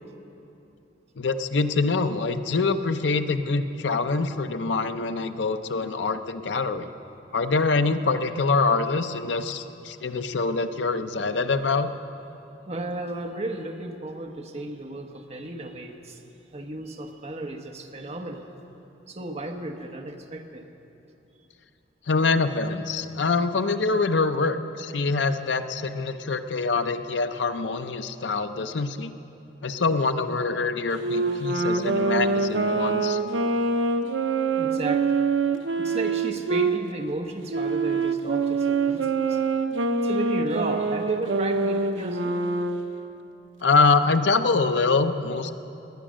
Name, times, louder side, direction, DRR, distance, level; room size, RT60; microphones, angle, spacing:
voice 1, 1.2-6.9 7.3-11.9 22.1-29.1 29.6-33.2 43.6-45.5, left 4 dB, 70° left, 9 dB, 0.6 m, -25 dB
voice 2, 12.7-16.2 16.5-18.5 19.1-20.6 34.5-35.1 35.8-39.4 40.0-42.6, right 2 dB, 35° right, 4 dB, 1.1 m, -34 dB
Wind instrument woodwind instrument, 30.9-36.8 37.5-42.9, right 4 dB, 85° right, 0.7 m, -25 dB
18.5 x 10.0 x 6.3 m, 2.9 s
head